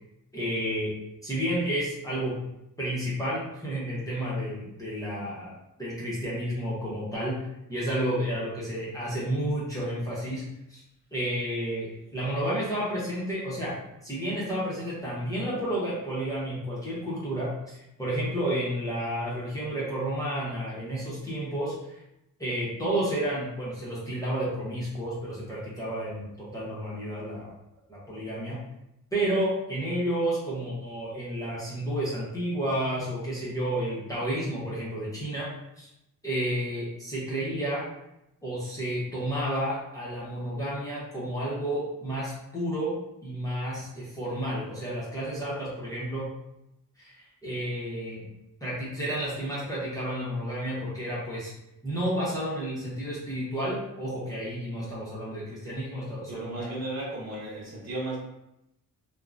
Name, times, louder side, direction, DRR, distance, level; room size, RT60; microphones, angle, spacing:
voice 1, 0.3-0.9 1.2-2.4 2.8-7.4 7.7-10.4 10.7-10.8 11.1-13.8 14.0-22.0 22.4-27.5 27.9-28.6 29.1-35.5 35.8-35.9 36.2-37.8 38.4-42.9 43.2-46.3 47.0-48.3 48.6-51.5 51.8-56.7, right 1 dB, 10° left, -8 dB, 0.8 m, -31 dB
voice 2, 56.3-58.2, right 2 dB, 45° right, -6 dB, 1.2 m, -34 dB
3.6 x 2.2 x 2.5 m, 0.85 s
wide cardioid pair, 135°, 35 cm